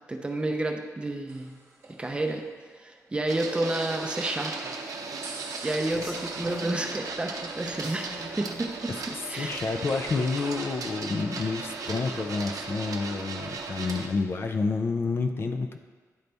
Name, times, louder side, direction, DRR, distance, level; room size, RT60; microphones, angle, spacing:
voice 1, 0.1-1.6 2.0-2.4 2.8-4.7 5.6-8.9 9.2-9.5, right 2 dB, 20° right, 3 dB, 0.5 m, -30 dB
sound 1, 1.3-3.3 4.1-10.7, right 2 dB, 45° right, 0.9 m, -46 dB
Printer, 3.3-14.1, right 4 dB, 85° right, 0.6 m, -37 dB
Rain, 5.7-13.9, left 1 dB, 65° left, 1.3 m, -48 dB
voice 2, 8.9-15.8, left 4 dB, 40° left, 5 dB, 0.4 m, -29 dB
10.5 x 4.0 x 3.4 m, 1.5 s
wide cardioid pair, 170°, 6 cm